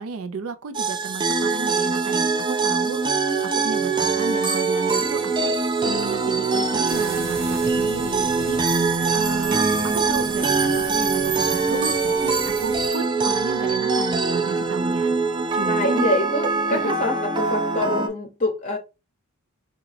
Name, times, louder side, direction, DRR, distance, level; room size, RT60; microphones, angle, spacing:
voice 1, 0.0-5.6 5.8-8.6 9.1-15.2 15.5-16.0 16.7-16.9, right 4 dB, 85° right, 0.5 m, -33 dB
sound 1, 0.7-18.1, right 4 dB, 20° right, 0.4 m, -23 dB
sound 2, 6.9-12.9, right 2 dB, 45° right, 1.1 m, -37 dB
voice 2, 15.7-18.8, left 2 dB, 35° left, 0.6 m, -25 dB
3.5 x 2.3 x 3.2 m
head